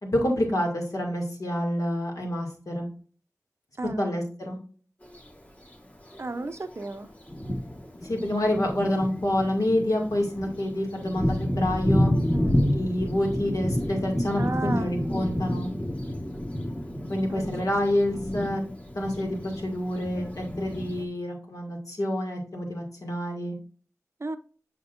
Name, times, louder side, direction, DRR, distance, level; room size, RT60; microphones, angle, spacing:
voice 1, 0.0-2.9 4.0-4.6 8.0-12.1 12.7-15.7 17.1-18.6 19.0-23.6, left 1 dB, 70° left, 2.1 m, -28 dB
voice 2, 3.8-4.1 6.2-7.1 12.3-12.6 14.4-15.0 17.3-17.7 24.2-24.4, right 2 dB, 50° right, 0.6 m, -34 dB
Thunder, 5.0-5.2 6.1-6.2 6.8-6.9 7.3-21.0, equal, 20° left, 1.3 m, -29 dB
6.9 x 5.9 x 2.5 m
wide cardioid pair, 55°, 6 cm